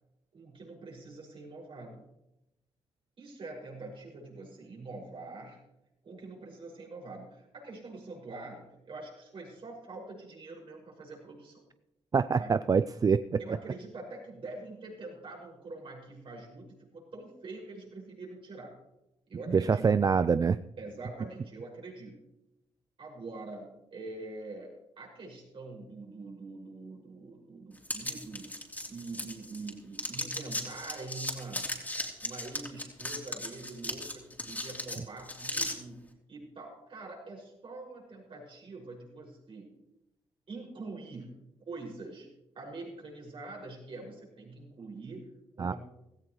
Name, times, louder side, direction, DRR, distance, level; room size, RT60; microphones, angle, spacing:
voice 1, 0.3-2.0 3.2-5.6 6.0-11.6 12.3-12.6 13.4-18.7 19.3-20.0 20.8-22.1 23.0-28.5 28.9-31.7 32.2-36.0 36.3-39.7 40.5-41.4 41.7-42.3 42.5-45.7, right 3 dB, 55° right, -1 dB, 6.2 m, -44 dB
voice 2, 12.1-13.2 19.7-20.6 45.6-45.7, right 5 dB, 35° right, 14 dB, 0.4 m, -25 dB
sound 1, 27.8-29.7 30.0-35.7, left 1 dB, 15° left, 3.2 m, -36 dB
17.0 x 14.5 x 3.2 m, 0.89 s
cardioid pair, 70°, 10 cm